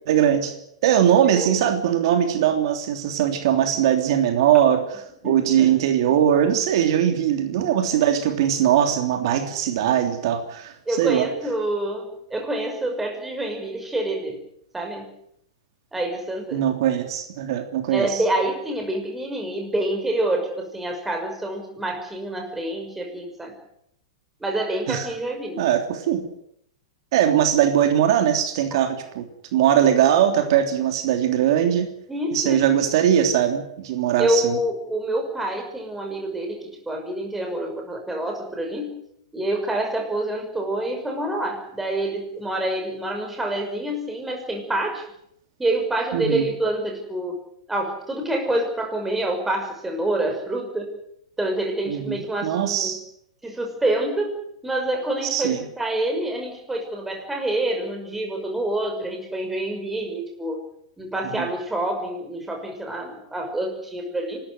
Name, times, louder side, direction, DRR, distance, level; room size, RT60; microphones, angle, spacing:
voice 1, 0.1-0.5 0.8-11.3 16.5-18.2 24.9-25.1 25.6-26.2 27.1-29.3 29.5-31.9 32.3-34.6 46.1-46.5 51.9-53.0 55.3-55.6 61.3-61.5, right 10 dB, 60° right, 5 dB, 3.2 m, -20 dB
voice 2, 5.2-5.7 10.9-14.4 14.7-15.1 15.9-16.6 17.9-23.5 24.4-25.6 28.7-28.8 32.1-32.6 34.2-39.0 39.3-45.0 45.6-47.3 47.7-50.9 51.4-53.0 53.4-54.3 54.6-60.6 61.0-64.4, right 1 dB, 5° right, 3 dB, 5.9 m, -27 dB
26.0 x 13.5 x 9.5 m, 0.73 s
hypercardioid pair, 140°, 3 cm